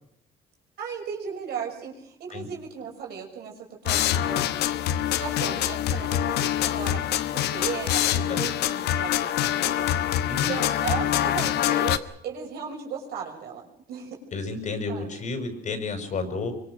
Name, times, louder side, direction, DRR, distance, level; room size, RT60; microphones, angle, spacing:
voice 1, 0.8-4.5 5.2-7.0 7.3-9.9 10.5-14.2 14.9-15.1, right 7 dB, 70° right, 1 dB, 6.1 m, -36 dB
sound 1, 3.8-12.0, left 12 dB, 75° left, 1.2 m, -25 dB
voice 2, 14.3-16.5, left 3 dB, 45° left, 8 dB, 6.1 m, -31 dB
24.5 x 24.0 x 6.4 m, 0.71 s
cardioid pair, 110°, 17 cm